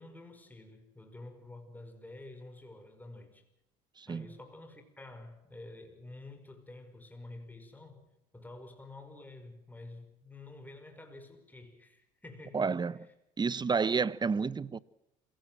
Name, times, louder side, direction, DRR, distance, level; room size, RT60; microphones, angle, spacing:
voice 1, 0.0-3.4 4.1-13.1, left 2 dB, 10° left, 5.4 m, -49 dB
voice 2, 12.5-13.0 13.4-14.8, right 5 dB, 25° right, 1.0 m, -30 dB
27.5 x 17.0 x 7.7 m
supercardioid pair, 85°, 16 cm